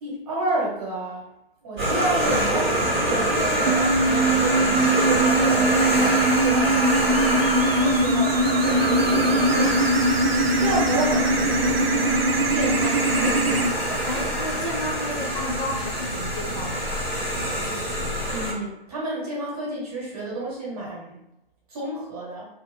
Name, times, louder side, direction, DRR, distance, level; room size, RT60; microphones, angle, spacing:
voice 1, 0.0-1.2 1.6-11.8 12.5-13.7 18.3-21.2 21.7-22.5, right 2 dB, 15° right, -7 dB, 0.9 m, -31 dB
sound 1, 1.8-18.5, right 1 dB, ahead, 0.4 m, -25 dB
sound 2, 3.7-13.7, right 2 dB, 75° right, 0.5 m, -22 dB
voice 2, 7.8-8.3 14.0-16.9, left 1 dB, 40° left, -7 dB, 0.7 m, -31 dB
2.4 x 2.4 x 3.3 m, 0.84 s
figure-of-eight pair, 150°, 30 cm